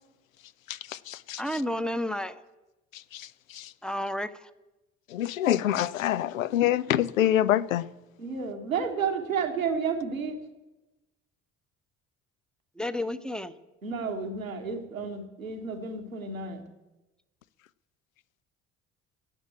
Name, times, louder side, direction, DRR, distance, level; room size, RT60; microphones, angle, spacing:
voice 1, 0.7-1.4 3.1-3.3 3.5-3.7 5.1-7.8, left 12 dB, 80° left, 0.5 m, -26 dB
voice 2, 1.4-2.4 3.8-4.5 12.8-13.5, left 1 dB, ahead, 0.8 m, -31 dB
voice 3, 8.2-10.4 13.8-16.6, right 5 dB, 85° right, 1.2 m, -31 dB
16.5 x 7.5 x 8.4 m
figure-of-eight pair, 50°, 40 cm